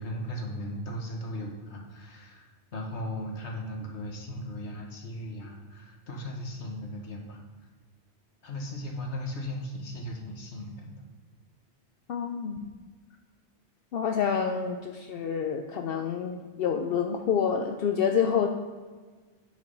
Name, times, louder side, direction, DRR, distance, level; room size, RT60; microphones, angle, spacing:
voice 1, 0.0-7.4 8.4-10.9, left 1 dB, 80° left, 0 dB, 1.7 m, -37 dB
voice 2, 12.1-12.7 13.9-18.5, left 7 dB, 65° left, 5 dB, 0.7 m, -28 dB
6.9 x 5.1 x 5.3 m, 1.4 s
omnidirectional pair, 1.1 m